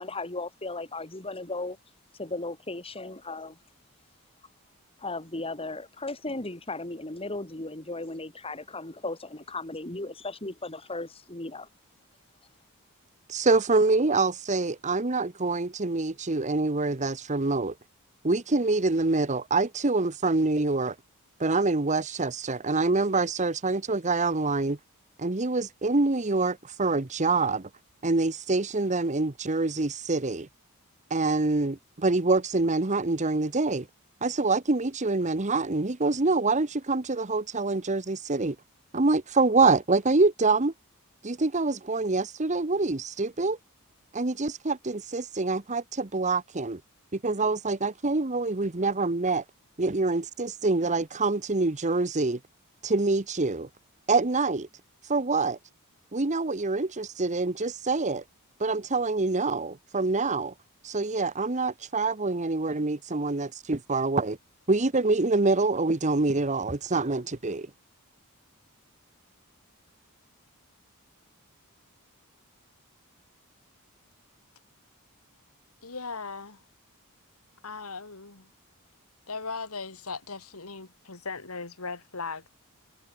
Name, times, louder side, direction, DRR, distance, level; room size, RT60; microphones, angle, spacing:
voice 1, 0.0-1.8 2.2-3.6 5.0-11.7, left 2 dB, 25° left, 2.9 m, -36 dB
voice 2, 13.3-17.7 18.2-20.9 21.4-24.8 25.2-27.7 28.0-30.5 31.1-33.9 34.2-38.6 38.9-40.7 41.2-43.6 44.1-46.8 47.1-49.4 49.8-52.4 52.8-53.7 54.1-54.7 55.1-55.6 56.1-58.2 58.6-60.5 60.8-64.4 64.7-67.7, right 3 dB, 35° right, 1.1 m, -26 dB
voice 3, 75.8-76.6 77.6-78.5 79.3-82.5, left 4 dB, 70° left, 2.3 m, -38 dB
head